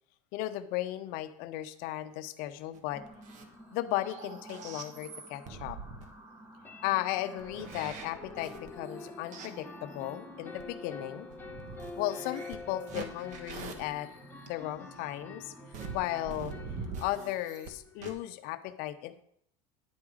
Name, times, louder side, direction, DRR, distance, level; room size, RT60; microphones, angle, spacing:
voice 1, 0.3-3.0 3.7-5.8 6.8-11.3 12.0-14.1 14.5-15.5 15.9-16.6 17.0-19.2, left 15 dB, 65° left, 11 dB, 0.8 m, -35 dB
sound 1, 2.7-2.8 3.2-3.3 3.6-3.7 6.6-18.1, left 3 dB, 10° left, 1.0 m, -47 dB
sound 2, 2.7-3.5 3.9-6.1 7.2-10.0 10.6-10.7 11.3-14.5 15.7-17.7 18.0-18.1, right 5 dB, 50° right, 1.4 m, -44 dB
sound 3, 2.9-17.3, right 1 dB, 20° right, 2.2 m, -53 dB
10.5 x 4.8 x 6.4 m, 0.69 s
supercardioid pair, 120°, 16 cm